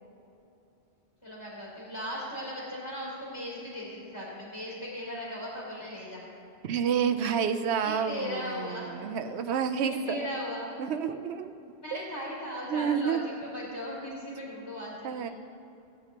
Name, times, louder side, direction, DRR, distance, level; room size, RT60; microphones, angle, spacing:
voice 1, 1.2-6.2 7.8-8.9 9.9-10.7 11.8-15.3, left 1 dB, 25° left, -7 dB, 3.0 m, -38 dB
voice 2, 6.6-10.3 10.8-11.5 11.9-12.0 12.7-13.2 15.0-15.3, right 7 dB, 90° right, 8 dB, 0.9 m, -29 dB
17.5 x 9.7 x 3.0 m, 2.7 s
omnidirectional pair, 1.1 m